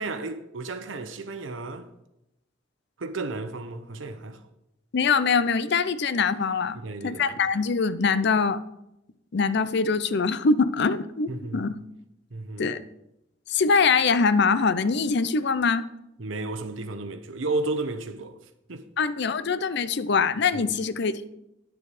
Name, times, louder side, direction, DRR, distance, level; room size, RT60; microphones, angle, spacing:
voice 1, 0.0-1.9 3.0-4.4 6.7-7.4 11.3-11.7 12.3-12.8 16.2-18.4 18.7-18.8 20.5-20.7, right 2 dB, 90° right, 0.9 m, -33 dB
voice 2, 4.9-8.6 9.3-11.7 12.6-12.8 13.5-15.8 19.0-21.3, left 5 dB, 60° left, 0.6 m, -23 dB
10.5 x 7.0 x 4.9 m
head